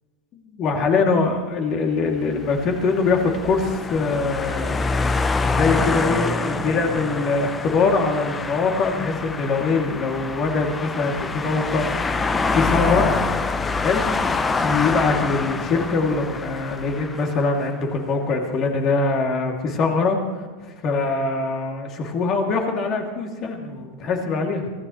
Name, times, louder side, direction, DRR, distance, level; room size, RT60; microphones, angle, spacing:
voice 1, 0.3-4.9 5.5-12.3 12.5-13.1 13.8-14.0 14.6-24.7, left 4 dB, 40° left, 2 dB, 2.7 m, -23 dB
sound 1, 2.2-17.6, left 4 dB, 20° left, 0.8 m, -26 dB
24.5 x 16.5 x 3.2 m, 1.4 s
figure-of-eight pair, 85°, 0 cm